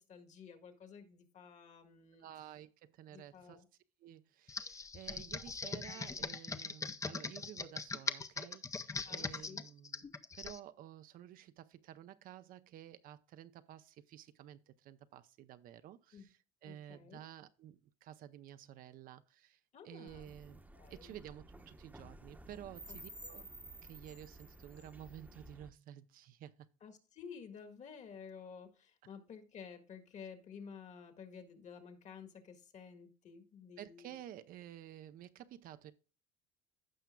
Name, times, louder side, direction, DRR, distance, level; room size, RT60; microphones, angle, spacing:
voice 1, 0.0-2.3 3.1-3.6 8.9-9.6 16.1-16.3 16.6-17.3 19.7-20.3 20.7-21.1 22.9-23.0 23.3-23.5 26.8-34.2, left 6 dB, 45° left, 1.7 m, -52 dB
voice 2, 2.2-3.6 4.0-10.1 10.3-19.6 19.8-23.4 23.8-26.7 33.8-35.9, right 11 dB, 60° right, 0.6 m, -52 dB
Computer keyboard, 4.5-10.6, left 4 dB, 20° left, 0.6 m, -41 dB
sound 1, 20.1-25.7, right 1 dB, 10° right, 0.9 m, -53 dB
15.5 x 5.7 x 2.3 m
cardioid pair, 110°, 16 cm